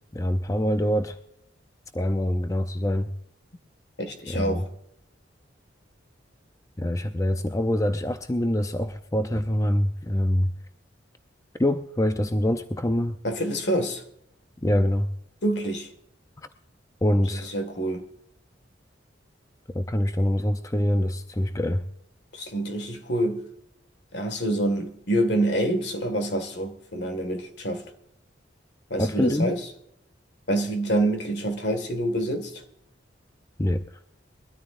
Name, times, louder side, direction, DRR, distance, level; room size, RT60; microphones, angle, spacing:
voice 1, 0.1-1.2 1.9-3.1 4.3-4.6 6.8-10.5 11.6-13.2 14.6-15.1 17.0-17.5 19.7-21.8 29.0-29.6 33.6-33.8, left 1 dB, 15° left, 0.5 m, -25 dB
voice 2, 4.0-4.7 13.2-14.0 15.4-15.9 17.5-18.1 22.3-23.4 24.1-27.8 28.9-29.6 30.5-32.6, right 1 dB, 65° left, 1.9 m, -26 dB
22.5 x 13.5 x 2.6 m
head